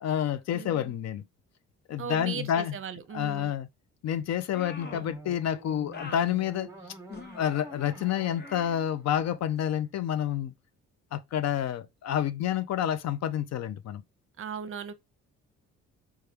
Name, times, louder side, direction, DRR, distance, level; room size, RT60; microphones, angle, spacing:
voice 1, 0.0-1.2 1.9-2.8 3.1-3.7 4.0-6.7 7.3-10.5 11.1-14.0, left 10 dB, 60° left, 0.5 m, -29 dB
voice 2, 0.5-0.9 2.0-3.5 14.4-14.9, right 7 dB, 45° right, 0.6 m, -38 dB
sound 1, 4.5-5.2 5.9-6.3 7.1-7.5 8.4-8.7, left 4 dB, 35° left, 0.8 m, -44 dB
sound 2, 4.8-9.9, right 2 dB, 10° right, 1.1 m, -47 dB
4.4 x 2.3 x 3.3 m
cardioid pair, 90°, 30 cm